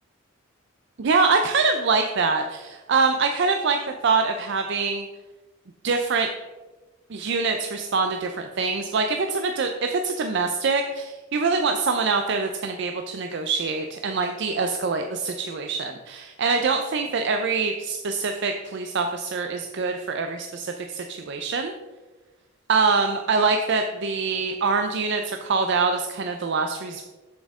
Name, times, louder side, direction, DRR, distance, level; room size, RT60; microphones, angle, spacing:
voice 1, 1.0-3.8 4.0-5.1 5.8-6.3 7.1-21.7 22.7-27.0, right 4 dB, 55° right, 5 dB, 0.5 m, -24 dB
7.5 x 7.1 x 3.6 m, 1.2 s
head